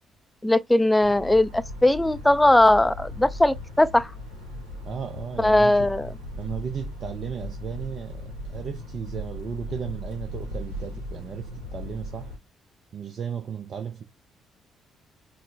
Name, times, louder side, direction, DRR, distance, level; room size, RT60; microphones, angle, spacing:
voice 1, 0.4-4.1 5.4-6.1, left 1 dB, 10° left, 0.3 m, -19 dB
sound 1, 1.0-12.4, left 1 dB, 90° right, 1.0 m, -37 dB
voice 2, 4.8-5.9 6.4-12.3 12.9-14.0, right 7 dB, 50° right, 0.5 m, -35 dB
4.3 x 2.1 x 3.3 m
figure-of-eight pair, 45°, 0 cm